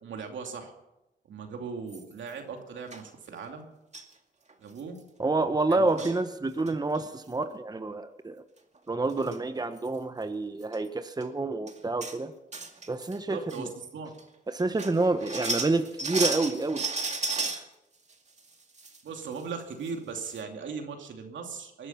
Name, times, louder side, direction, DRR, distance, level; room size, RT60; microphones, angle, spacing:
voice 1, 0.0-0.7 1.3-3.7 4.6-5.0 5.7-6.1 13.3-14.1 19.0-21.9, right 5 dB, 75° right, 3 dB, 2.7 m, -38 dB
sound 1, 1.9-2.3 2.9-3.0 3.9-4.1 4.5-4.6 4.8-5.0 5.7-6.2 6.6-7.0 8.8-8.9 9.1-9.4 9.8-9.9 10.6-10.8 11.2-11.3 11.7-12.2 12.5-13.2 13.5-13.6 14.2-14.3 14.6-17.6 18.1-19.0 19.3-19.4 19.8-19.9 20.2-20.4, right 3 dB, 35° right, 2.3 m, -34 dB
voice 2, 5.2-8.4 8.9-12.3 12.9-13.7 14.5-16.9 17.6-17.7, right 2 dB, 20° right, 9 dB, 1.1 m, -28 dB
20.5 x 11.0 x 5.9 m, 0.93 s
cardioid pair, 70°, 19 cm